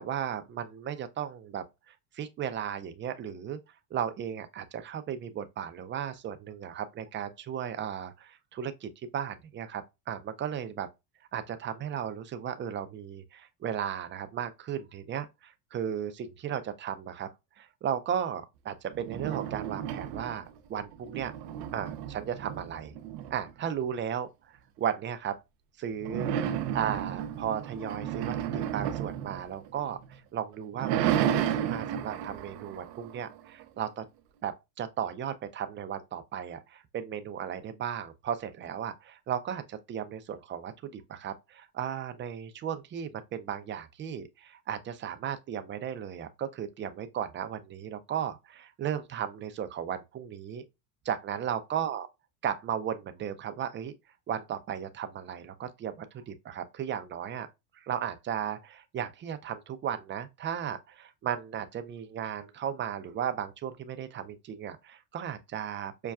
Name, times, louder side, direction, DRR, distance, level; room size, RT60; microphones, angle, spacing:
voice 1, 0.0-3.6 3.9-10.9 11.3-17.3 17.6-21.3 21.7-22.9 23.3-25.4 25.8-34.0 34.4-50.6 51.0-52.1 52.4-53.9 54.3-57.5 57.7-66.1, right 9 dB, 25° right, 0.5 m, -35 dB
sound 1, 18.9-20.6 20.9-23.7 26.0-30.1 30.5-33.6, right 10 dB, 70° right, 0.7 m, -33 dB
5.4 x 2.2 x 2.3 m
supercardioid pair, 95°, 49 cm